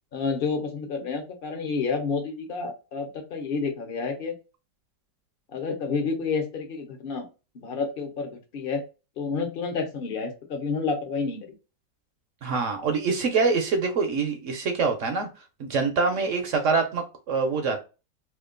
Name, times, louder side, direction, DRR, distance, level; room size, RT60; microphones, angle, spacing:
voice 1, 0.1-4.3 5.5-7.3 7.5-8.8 9.2-11.5, left 4 dB, 45° left, 0.7 m, -29 dB
voice 2, 12.4-15.3 15.6-17.9, right 4 dB, 60° right, 0.8 m, -25 dB
2.9 x 2.4 x 3.7 m
omnidirectional pair, 1.9 m